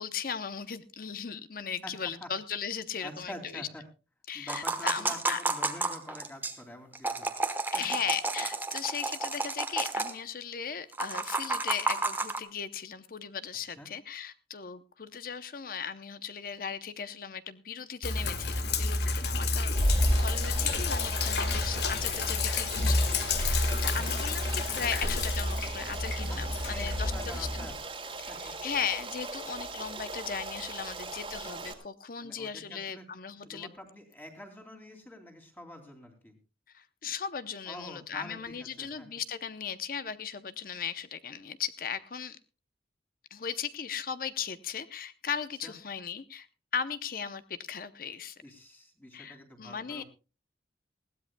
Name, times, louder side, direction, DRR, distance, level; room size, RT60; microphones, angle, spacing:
voice 1, 0.0-3.7 4.3-5.4 7.7-19.7 20.2-23.0 23.4-27.5 28.2-33.7 36.7-42.4 43.3-46.5 46.7-48.4 49.1-50.0, left 7 dB, 50° left, 12 dB, 0.7 m, -37 dB
voice 2, 3.0-3.8 4.3-7.3 7.7-7.8 13.8-13.9 20.0-20.7 26.3-27.8 28.3-28.4 32.2-33.0 33.4-36.3 37.7-39.1 45.6-45.7 48.4-50.0, left 1 dB, 10° left, 3 dB, 2.7 m, -47 dB
sound 1, 4.5-6.5 6.9-10.1 10.9-12.4, right 3 dB, 10° right, 1.1 m, -31 dB
Sink (filling or washing), 18.0-27.7, left 2 dB, 65° left, 1.5 m, -29 dB
Stream, 19.8-31.7, right 3 dB, 30° right, 2.1 m, -40 dB
20.5 x 16.0 x 2.2 m, 0.32 s
head